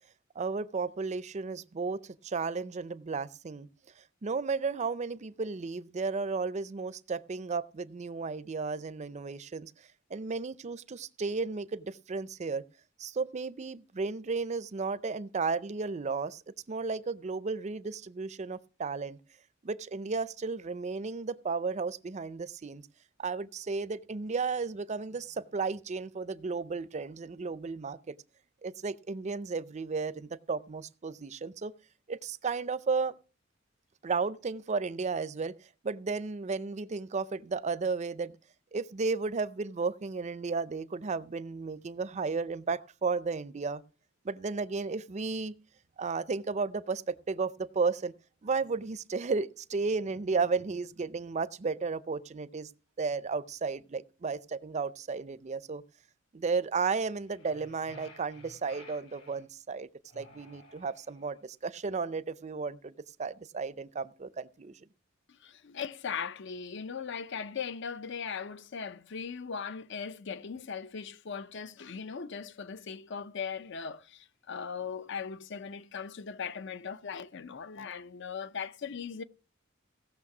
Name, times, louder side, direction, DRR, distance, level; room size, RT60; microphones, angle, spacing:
voice 1, 0.4-3.7 4.2-9.7 10.1-12.6 13.0-16.4 16.7-19.2 19.6-22.8 23.2-28.2 28.6-31.7 32.1-33.1 34.0-35.5 35.8-38.4 38.7-43.8 44.2-45.5 46.0-48.1 48.4-52.7 53.0-55.8 56.3-59.9 60.1-64.8, right 4 dB, 35° right, 0.5 m, -33 dB
sound 1, 57.2-59.4 60.1-61.3, left 2 dB, 80° left, 6.3 m, -54 dB
voice 2, 65.3-79.2, left 6 dB, 60° left, 0.6 m, -39 dB
17.0 x 6.5 x 6.0 m
head